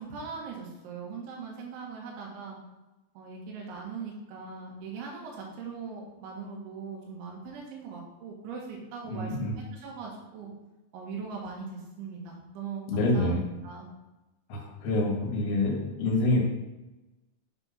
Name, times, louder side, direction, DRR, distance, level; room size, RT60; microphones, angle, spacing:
voice 1, 0.0-2.6 3.2-10.5 10.9-13.9, right 5 dB, 85° right, -2 dB, 3.9 m, -40 dB
voice 2, 9.1-9.5 12.9-13.4 14.5-16.4, left 2 dB, 80° left, -1 dB, 4.0 m, -27 dB
8.8 x 3.7 x 5.6 m, 1.0 s
omnidirectional pair, 5.3 m